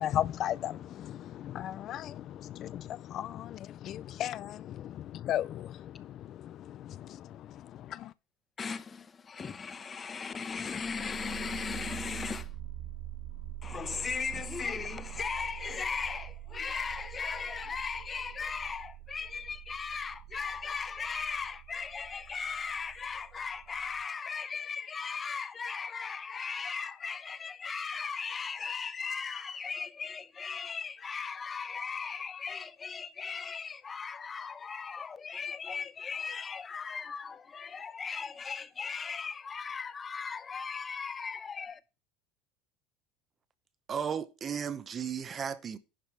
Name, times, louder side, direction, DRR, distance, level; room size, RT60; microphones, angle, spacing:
voice 1, 0.0-8.1, left 11 dB, 40° left, 0.4 m, -36 dB
voice 2, 8.6-12.5 13.6-41.8, left 5 dB, 20° left, 0.8 m, -37 dB
sound 1, 10.7-24.0, right 12 dB, 65° right, 1.9 m, -45 dB
voice 3, 43.9-45.8, right 7 dB, 25° right, 0.8 m, -35 dB
11.0 x 5.3 x 5.8 m
cardioid pair, 145°, 0 cm